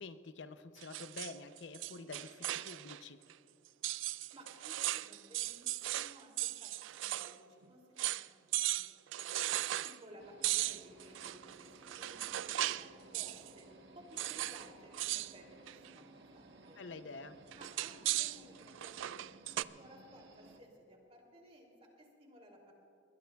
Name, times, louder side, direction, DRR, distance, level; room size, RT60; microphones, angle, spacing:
voice 1, 0.0-3.2 16.8-17.4, left 3 dB, 75° left, 11 dB, 0.6 m, -48 dB
sound 1, 0.8-3.0 3.3-3.4 3.8-7.4 7.6-7.7 8.0-8.3 8.5-10.0 10.4-12.9 13.1-13.5 14.2-14.7 14.9-15.3 15.7-16.0 17.5-19.6, right 15 dB, 90° right, 0.3 m, -37 dB
voice 2, 4.3-13.7 13.9-16.8 17.5-22.7, equal, 35° right, 0 dB, 2.9 m, -58 dB
sound 2, 10.2-20.6, right 2 dB, 70° right, 1.2 m, -58 dB
21.5 x 20.0 x 2.3 m, 2.8 s
head